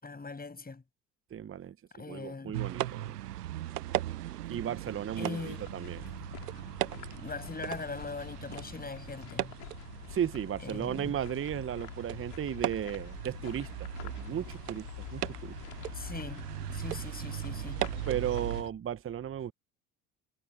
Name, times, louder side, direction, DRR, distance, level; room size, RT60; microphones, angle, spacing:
voice 1, 0.0-0.8 1.9-2.6 5.2-5.7 7.1-9.5 10.6-11.2 15.9-17.9, left 4 dB, 20° left, 7.2 m, -41 dB
voice 2, 1.3-1.8 2.1-3.2 4.5-6.0 6.9-7.1 10.1-15.5 18.1-19.5, right 9 dB, 30° right, 1.0 m, -35 dB
sound 1, 2.5-18.6, right 13 dB, 80° right, 0.9 m, -38 dB
sound 2, 5.4-18.7, left 38 dB, 65° left, 4.9 m, -47 dB
hypercardioid pair, 65°, 46 cm